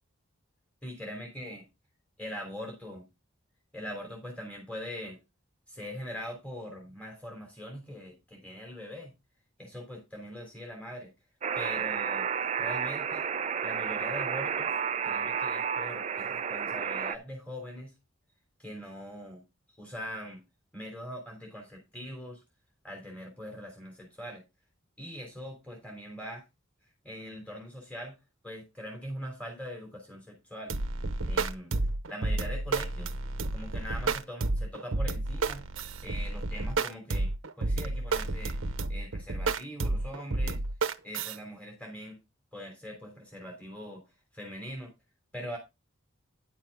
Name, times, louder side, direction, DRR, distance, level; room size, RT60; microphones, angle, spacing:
voice 1, 0.8-1.6 2.2-3.0 3.7-5.2 5.7-9.1 9.6-11.1 11.5-13.2 13.6-14.7 15.0-17.9 18.6-19.4 19.8-20.4 20.7-22.4 22.8-24.4 25.0-26.4 27.0-28.1 28.4-30.7 31.2-31.7 32.1-33.1 33.5-35.6 36.0-37.3 37.6-38.6 38.9-40.6 41.0-42.2 42.5-44.0 44.3-44.9 45.3-45.6, equal, 5° left, 0 dB, 3.2 m, -42 dB
Alarm, 11.4-17.2, right 7 dB, 35° right, 0.4 m, -31 dB
sound 1, 30.7-41.4, right 3 dB, 80° right, 0.9 m, -31 dB
10.5 x 7.2 x 3.5 m, 0.24 s
head